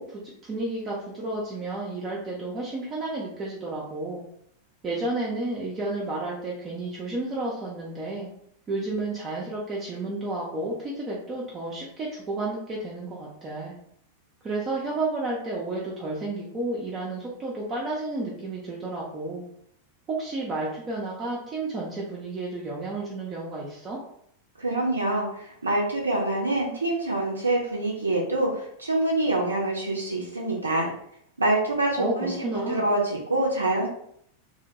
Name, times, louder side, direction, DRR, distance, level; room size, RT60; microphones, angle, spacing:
voice 1, 0.0-4.2 4.8-8.3 8.7-13.7 14.4-19.4 20.1-24.0 32.0-32.9, right 2 dB, 25° right, -4 dB, 0.5 m, -31 dB
voice 2, 24.6-30.9 31.4-33.9, right 2 dB, 80° right, -2 dB, 0.4 m, -26 dB
2.1 x 2.1 x 2.7 m, 0.69 s
figure-of-eight pair, 90°, 0 cm